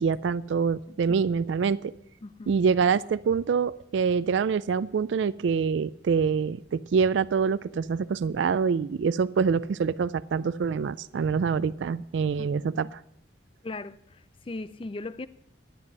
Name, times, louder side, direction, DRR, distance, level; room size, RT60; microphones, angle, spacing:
voice 1, 0.0-1.9 2.5-13.0, right 5 dB, 70° right, 0.3 m, -25 dB
voice 2, 2.2-2.6 12.4-12.5 13.6-15.3, left 2 dB, 30° left, 0.4 m, -38 dB
12.5 x 9.2 x 5.4 m
head